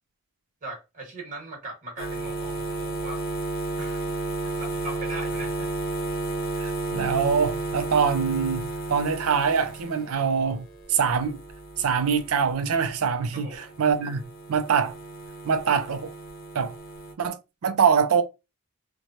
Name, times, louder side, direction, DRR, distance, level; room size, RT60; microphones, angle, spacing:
voice 1, 0.6-3.2 3.8-5.7 13.3-13.7, right 2 dB, 40° right, 1.3 m, -40 dB
sound 1, 2.0-13.2 13.5-17.1, right 2 dB, 45° left, 0.7 m, -33 dB
voice 2, 6.6-11.4 11.8-15.0 15.4-16.1 16.5-16.8 17.2-18.2, right 6 dB, 85° right, 0.5 m, -24 dB
3.0 x 2.2 x 2.6 m
head